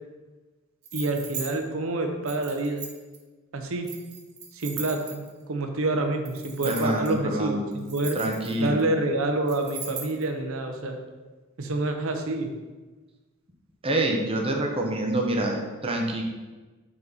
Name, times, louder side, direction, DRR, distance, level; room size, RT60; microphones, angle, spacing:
sound 1, 0.8-1.5 2.3-3.2 3.8-5.4 6.2-7.1 7.7-8.8 9.5-10.2, right 6 dB, 50° right, 1.3 m, -38 dB
voice 1, 0.9-2.8 3.5-3.9 4.5-5.2 5.5-8.2 8.6-11.0 11.6-12.5, right 2 dB, 75° right, 4 dB, 0.9 m, -27 dB
voice 2, 6.6-7.7 8.1-8.8 13.8-16.2, right 1 dB, 25° right, 1 dB, 0.9 m, -26 dB
5.7 x 5.3 x 4.0 m, 1.3 s
head